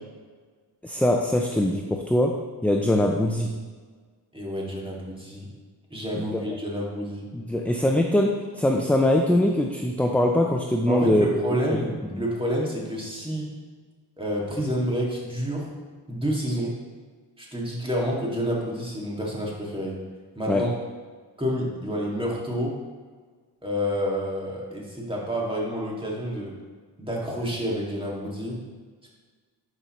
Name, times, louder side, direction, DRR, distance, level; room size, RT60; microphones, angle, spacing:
voice 1, 0.8-2.4 2.6-3.5 6.1-6.4 7.3-11.3 12.1-12.2 20.5-20.6, left 1 dB, 5° left, 2 dB, 0.4 m, -22 dB
voice 2, 4.3-5.5 5.9-7.3 10.9-13.5 14.2-15.7 16.1-16.8 17.4-20.0 20.4-20.7 21.4-22.8 23.6-26.6 27.0-28.6, equal, 10° right, -3 dB, 2.1 m, -29 dB
11.0 x 5.5 x 3.1 m, 1.5 s
cardioid pair, 85°, 43 cm